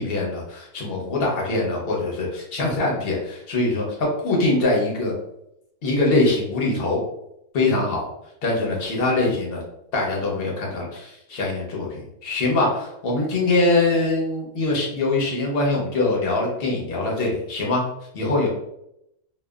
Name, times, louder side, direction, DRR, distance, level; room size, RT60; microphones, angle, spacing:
voice 1, 0.0-5.1 5.8-7.0 7.5-8.0 8.4-9.6 9.9-17.8 18.1-18.5, left 2 dB, 60° left, -2 dB, 0.6 m, -23 dB
2.9 x 2.1 x 2.2 m, 0.81 s
omnidirectional pair, 1.7 m